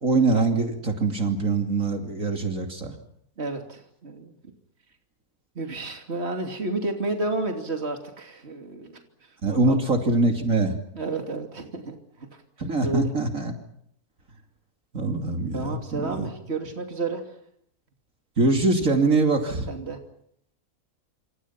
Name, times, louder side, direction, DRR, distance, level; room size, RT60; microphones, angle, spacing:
voice 1, 0.0-2.9 9.4-10.7 12.6-13.5 14.9-16.3 18.4-19.7, right 3 dB, 60° right, 4 dB, 3.2 m, -23 dB
voice 2, 3.4-4.3 5.5-9.8 10.9-12.3 12.8-13.1 15.5-17.3 19.7-20.0, right 3 dB, 45° right, 4 dB, 3.1 m, -31 dB
28.0 x 27.0 x 5.9 m, 0.71 s
omnidirectional pair, 1.6 m